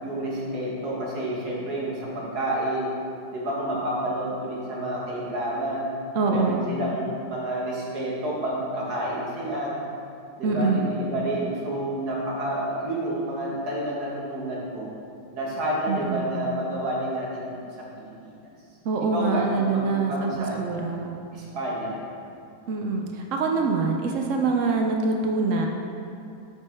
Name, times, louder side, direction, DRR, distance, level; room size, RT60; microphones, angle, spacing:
voice 1, 0.0-2.9 3.3-5.8 6.3-9.7 10.4-14.9 15.3-18.3 19.0-20.8 21.3-22.0, right 1 dB, 55° right, -5 dB, 1.9 m, -29 dB
voice 2, 6.1-6.7 10.4-10.9 15.9-16.4 18.8-21.1 22.7-25.7, right 4 dB, 90° right, 2 dB, 0.6 m, -25 dB
8.8 x 6.1 x 3.5 m, 2.5 s
omnidirectional pair, 2.1 m